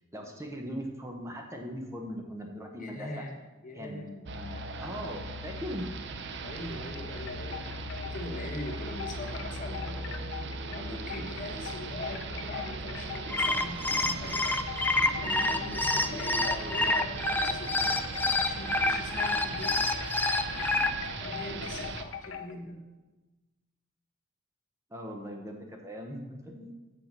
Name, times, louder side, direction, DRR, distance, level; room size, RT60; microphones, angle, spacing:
voice 1, 0.1-3.2 3.7-5.9 24.9-26.7, equal, 15° right, 2 dB, 0.9 m, -40 dB
voice 2, 2.8-3.3 3.6-4.1 6.4-7.6 8.0-10.1 10.7-14.5 15.2-17.9 18.4-19.8 21.2-22.8, left 1 dB, 40° left, 1 dB, 1.3 m, -41 dB
sound 1, 4.3-22.0, right 2 dB, 60° right, 0.6 m, -38 dB
sound 2, 6.9-14.1 14.4-22.5, left 7 dB, 65° left, 0.6 m, -42 dB
sound 3, 13.1-20.9, left 2 dB, 10° left, 0.4 m, -27 dB
7.4 x 6.6 x 5.9 m, 1.2 s
head